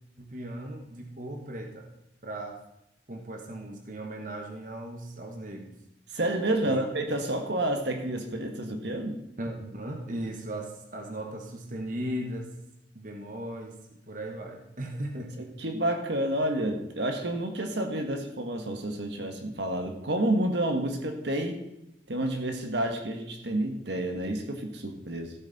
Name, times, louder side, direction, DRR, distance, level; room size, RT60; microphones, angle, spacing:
voice 1, 0.2-1.9 2.2-2.6 3.1-5.8 6.6-6.9 9.4-12.5 12.9-13.8 14.1-15.5, right 1 dB, 45° right, 3 dB, 1.3 m, -37 dB
voice 2, 6.1-9.2 15.4-21.6 22.1-25.3, right 1 dB, 70° right, 5 dB, 1.5 m, -29 dB
14.5 x 8.3 x 4.1 m, 0.87 s
head